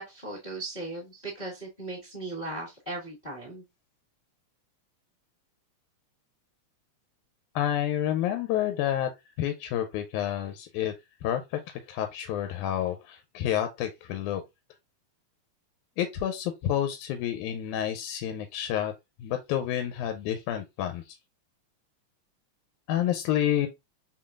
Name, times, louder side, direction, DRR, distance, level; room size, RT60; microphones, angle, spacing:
voice 1, 0.0-3.6, right 2 dB, 25° left, 1.0 m, -37 dB
voice 2, 7.6-9.1 9.4-10.9 11.2-11.6 11.9-14.4 16.0-18.9 19.2-21.0 22.9-23.7, left 11 dB, 90° left, 2.0 m, -29 dB
4.2 x 3.8 x 2.4 m
omnidirectional pair, 3.4 m